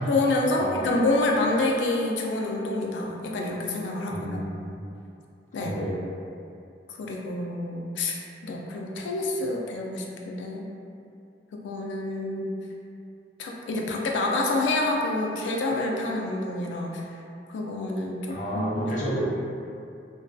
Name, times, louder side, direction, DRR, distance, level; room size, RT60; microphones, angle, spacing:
voice 1, 0.1-4.4 5.5-5.8 6.9-8.2 8.4-10.7 11.5-12.5 13.4-17.0 17.5-19.2, left 2 dB, 90° left, 0 dB, 0.3 m, -27 dB
voice 2, 4.1-4.7 5.6-6.0 18.3-19.2, equal, 45° left, -7 dB, 0.6 m, -31 dB
2.5 x 2.2 x 2.3 m, 2.5 s
head